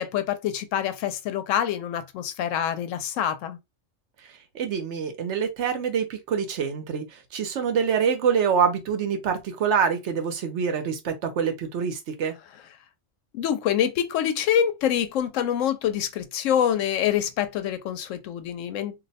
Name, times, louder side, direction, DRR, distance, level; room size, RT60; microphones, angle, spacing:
voice 1, 0.0-3.6 13.3-18.9, left 9 dB, 85° left, 0.9 m, -26 dB
voice 2, 4.5-12.3, right 6 dB, 70° right, 1.0 m, -25 dB
2.6 x 2.1 x 4.0 m
omnidirectional pair, 1.3 m